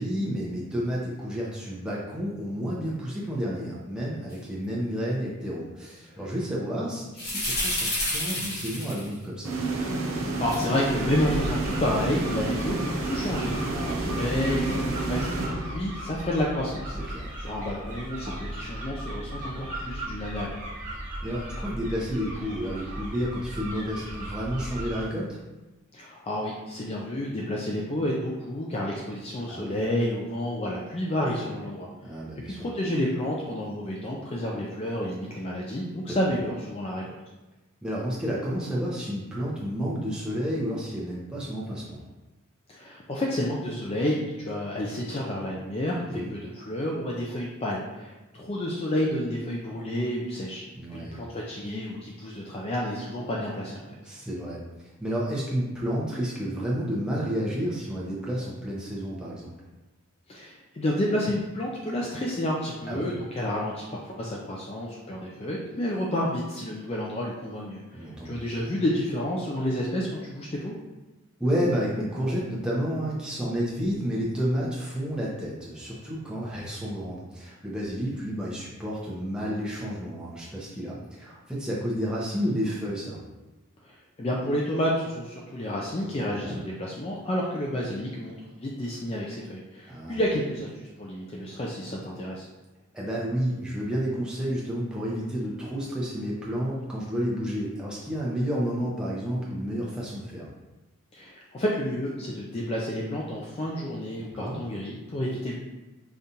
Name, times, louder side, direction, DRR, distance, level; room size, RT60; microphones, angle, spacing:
voice 1, 0.0-9.6 13.7-14.0 17.1-17.3 21.2-25.4 29.5-29.7 32.0-32.6 36.1-36.2 37.8-42.0 46.1-46.3 50.8-51.2 54.0-54.6 55.0-59.5 62.9-63.1 67.9-68.4 71.4-83.2 86.3-86.6 89.9-90.2 92.9-100.5 104.2-104.6, equal, 5° right, -6 dB, 0.7 m, -30 dB
sound 1, 7.2-9.1 10.5-10.7, left 1 dB, 45° left, 0.9 m, -29 dB
sound 2, 9.4-16.2, right 2 dB, 75° right, 0.6 m, -30 dB
voice 2, 10.4-13.5 13.8-17.0 17.4-20.5 25.9-37.0 42.7-50.6 50.9-54.0 60.3-70.7 83.8-92.5 101.1-105.6, left 1 dB, 25° left, -3 dB, 0.3 m, -30 dB
sound 3, 10.9-25.0, right 1 dB, 35° right, 0.9 m, -36 dB
5.1 x 2.4 x 2.8 m, 1.1 s
head